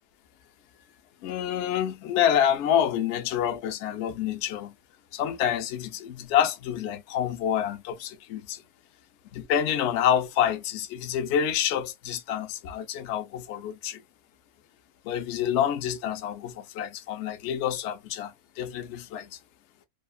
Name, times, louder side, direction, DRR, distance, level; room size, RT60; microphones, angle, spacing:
voice 1, 1.2-4.7 5.1-8.6 9.3-14.0 15.0-19.4, left 9 dB, 70° left, 0.6 m, -27 dB
2.7 x 2.3 x 2.2 m
omnidirectional pair, 1.7 m